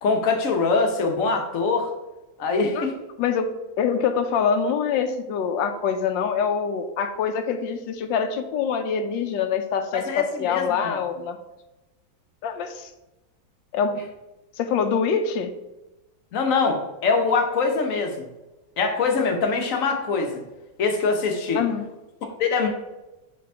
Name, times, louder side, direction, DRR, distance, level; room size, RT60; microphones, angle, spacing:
voice 1, 0.0-1.9 2.4-2.9 9.9-11.0 16.3-18.3 18.8-20.4 20.8-21.6 22.4-22.7, left 4 dB, 55° left, 4 dB, 1.0 m, -23 dB
voice 2, 3.8-11.4 12.4-12.9 13.7-14.0 14.6-15.5 21.5-21.8, left 6 dB, 75° left, 8 dB, 1.2 m, -25 dB
7.7 x 3.4 x 4.4 m, 1.0 s
omnidirectional pair, 2.2 m